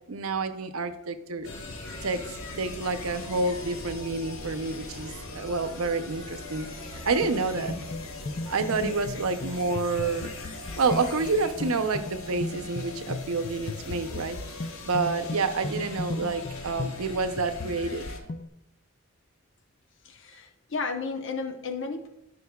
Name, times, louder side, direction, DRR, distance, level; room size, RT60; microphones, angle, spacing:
voice 1, 0.1-1.5 2.0-2.2 2.6-7.8 8.5-10.3 10.6-14.4 14.8-18.1, right 3 dB, 90° right, 9 dB, 0.7 m, -28 dB
sound 1, 1.4-18.2, left 2 dB, 85° left, 1.2 m, -41 dB
sound 2, 7.2-18.5, left 2 dB, 35° left, 0.4 m, -37 dB
voice 2, 20.0-22.1, left 4 dB, 60° left, 4 dB, 0.9 m, -33 dB
13.0 x 5.4 x 2.3 m, 0.89 s
head